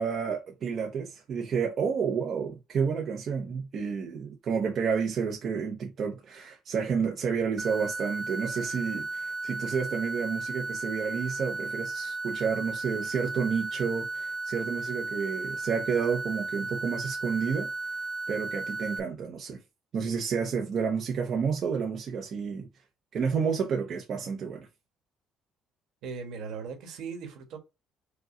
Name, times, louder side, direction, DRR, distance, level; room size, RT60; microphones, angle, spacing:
voice 1, 0.0-17.7 18.3-19.6 19.9-22.7 23.1-24.7, right 6 dB, 50° right, 0.7 m, -30 dB
sound 1, 7.6-19.0, right 3 dB, 10° right, 0.3 m, -35 dB
voice 2, 26.0-27.6, right 5 dB, 75° right, 1.4 m, -38 dB
4.9 x 2.3 x 3.8 m
cardioid pair, 110°, 0 cm